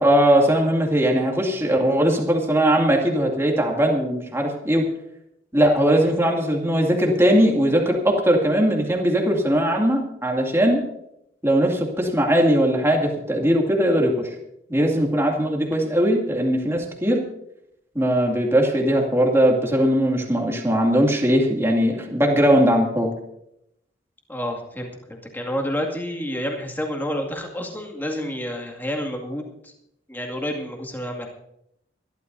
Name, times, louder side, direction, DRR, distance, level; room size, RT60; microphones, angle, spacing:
voice 1, 0.0-4.8 5.5-10.8 11.4-14.3 14.7-17.2 17.9-23.1, equal, 15° right, 0 dB, 2.4 m, -20 dB
voice 2, 24.3-29.7 30.1-31.3, equal, 10° left, 1 dB, 2.2 m, -29 dB
24.5 x 12.5 x 2.7 m, 0.79 s
head